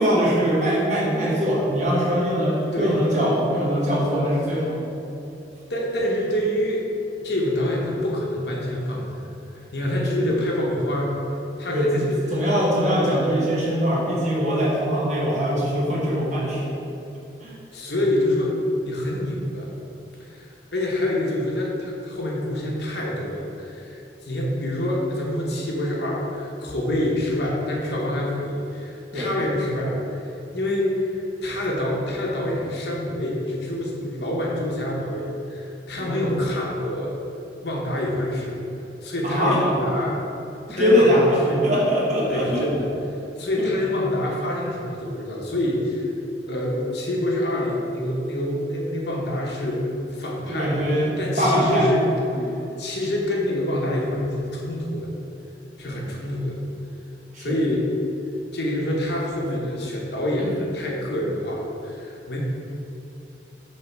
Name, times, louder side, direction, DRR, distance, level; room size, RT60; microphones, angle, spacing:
voice 1, 0.0-5.0 10.2-10.3 11.7-12.0 12.3-16.8 17.4-17.5 29.1-29.3 35.9-36.5 39.2-39.6 40.7-42.7 43.6-43.7 50.5-51.9 52.3-52.6 55.9-56.0 57.3-57.6 60.4-60.5, equal, 40° right, -5 dB, 1.3 m, -22 dB
voice 2, 5.7-6.8 7.1-9.3 9.6-11.2 11.6-12.4 17.7-18.5 18.8-19.7 20.2-30.2 30.5-37.1 37.6-38.7 39.0-40.2 40.7-41.6 42.3-42.8 43.4-46.1 46.4-52.1 52.8-55.1 55.8-56.6 57.4-57.9 58.5-62.4, left 1 dB, 65° left, -3 dB, 1.0 m, -26 dB
6.7 x 3.4 x 4.6 m, 2.9 s
head